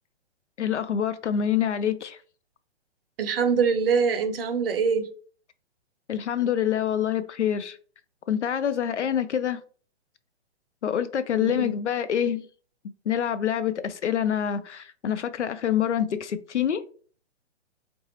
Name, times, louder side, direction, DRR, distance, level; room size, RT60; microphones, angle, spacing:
voice 1, 0.6-2.2 6.1-7.8 8.3-9.6 10.8-12.5 13.1-16.8, left 9 dB, 85° left, 0.5 m, -26 dB
voice 2, 3.2-5.1 11.3-11.7, right 6 dB, 55° right, 0.6 m, -24 dB
4.3 x 2.0 x 2.8 m
figure-of-eight pair, 125°, 34 cm